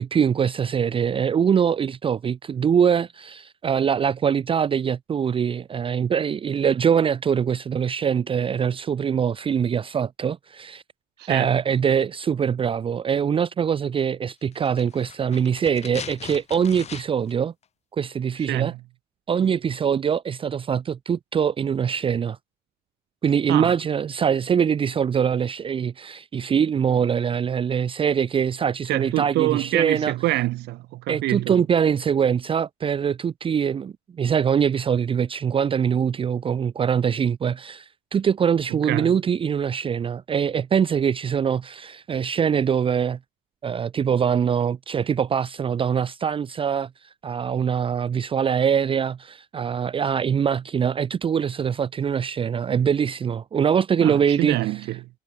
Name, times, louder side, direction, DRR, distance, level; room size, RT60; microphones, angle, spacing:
voice 1, 0.0-10.8 11.3-17.5 18.0-18.7 19.3-22.4 23.2-30.1 31.1-43.2 43.6-46.9 47.2-54.6, right 7 dB, 30° right, 0.6 m, -23 dB
voice 2, 11.2-11.5 18.5-18.8 23.5-23.7 28.9-31.6 38.7-39.1 54.0-55.1, right 18 dB, 80° right, 1.1 m, -26 dB
sound 1, 14.5-17.4 17.6-17.7, left 8 dB, 40° left, 1.3 m, -40 dB
cardioid pair, 110°, 17 cm